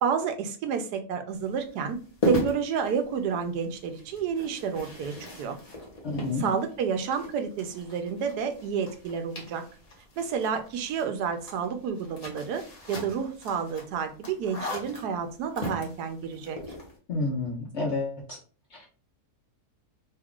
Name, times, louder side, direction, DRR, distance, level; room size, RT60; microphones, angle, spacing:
voice 1, 0.0-2.0 2.3-5.6 6.4-9.6 10.2-12.6 12.9-16.6, right 6 dB, 90° right, 7 dB, 1.2 m, -30 dB
sound 1, 1.3-17.0, left 1 dB, 30° left, 0.7 m, -38 dB
voice 2, 6.0-6.5 17.1-18.4 18.7-18.9, left 3 dB, 60° left, -2 dB, 0.8 m, -30 dB
3.1 x 2.3 x 3.5 m, 0.39 s
omnidirectional pair, 1.7 m